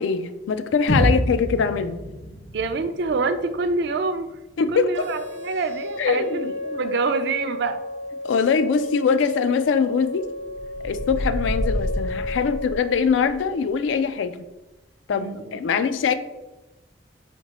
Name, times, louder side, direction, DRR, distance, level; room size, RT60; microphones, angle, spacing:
voice 1, 0.0-2.0 4.6-4.9 6.0-6.5 8.2-10.3 10.8-14.4 15.1-16.1, left 6 dB, 90° left, 11 dB, 0.3 m, -22 dB
sound 1, 0.9-4.8, equal, 65° left, 1.2 m, -28 dB
voice 2, 2.5-4.3 4.7-7.8 15.1-15.8, right 4 dB, 60° right, 9 dB, 0.3 m, -26 dB
sound 2, 4.9-12.9, left 2 dB, 80° right, 0.8 m, -32 dB
sound 3, 10.5-13.1, equal, 50° left, 0.6 m, -29 dB
4.3 x 3.6 x 2.9 m, 1.1 s
head